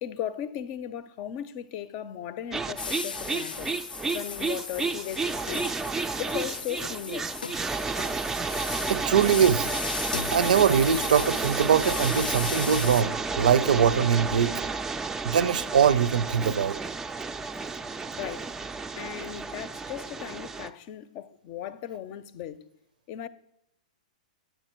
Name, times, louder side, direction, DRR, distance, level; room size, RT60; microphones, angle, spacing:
voice 1, 0.0-3.7 4.1-5.8 6.1-7.5 18.2-18.5 19.0-22.6 23.1-23.3, left 10 dB, 40° left, 0.6 m, -37 dB
sound 1, 2.5-20.7, right 4 dB, 10° right, 0.4 m, -32 dB
sound 2, 2.8-13.0, left 5 dB, 85° left, 0.5 m, -36 dB
voice 2, 8.9-9.7 10.3-14.5 15.2-16.8, right 8 dB, 70° right, 0.6 m, -22 dB
9.2 x 9.1 x 4.4 m
hypercardioid pair, 120°, 5 cm